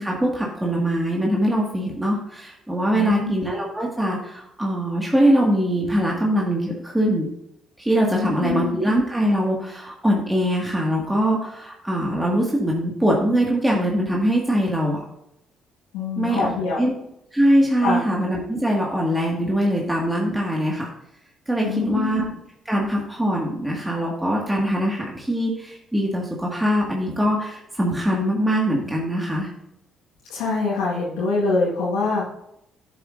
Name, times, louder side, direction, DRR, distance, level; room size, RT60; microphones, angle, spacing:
voice 1, 0.0-7.3 7.8-15.0 16.2-16.5 16.8-17.0 17.3-20.9 21.5-22.3 22.7-29.5, equal, 10° right, -3 dB, 1.9 m, -22 dB
voice 2, 2.9-3.3 8.1-8.8 15.9-16.9 17.8-18.1 21.6-22.4 30.3-32.3, left 4 dB, 80° left, -6 dB, 1.7 m, -24 dB
11.0 x 7.5 x 2.6 m, 0.80 s
hypercardioid pair, 50°, 0 cm